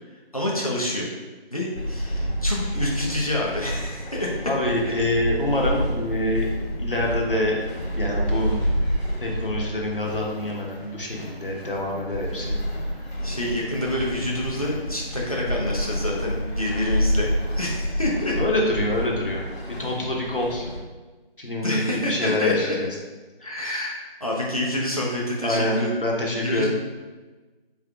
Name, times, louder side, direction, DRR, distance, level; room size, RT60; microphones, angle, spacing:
voice 1, 0.3-1.1 1.5-4.3 4.8-5.0 13.2-17.3 17.6-18.3 21.6-22.8 23.4-25.9 26.4-26.7, left 1 dB, 35° left, -4 dB, 0.6 m, -27 dB
sound 1, 1.7-20.8, equal, 85° left, 1.2 m, -29 dB
voice 2, 4.5-6.5 6.8-7.6 8.0-8.6 9.2-12.6 18.4-19.4 19.8-20.7 21.4-22.9 23.4-23.5 25.4-26.7, left 1 dB, 60° left, -2 dB, 1.0 m, -26 dB
4.3 x 3.7 x 2.3 m, 1.2 s
figure-of-eight pair, 175°, 31 cm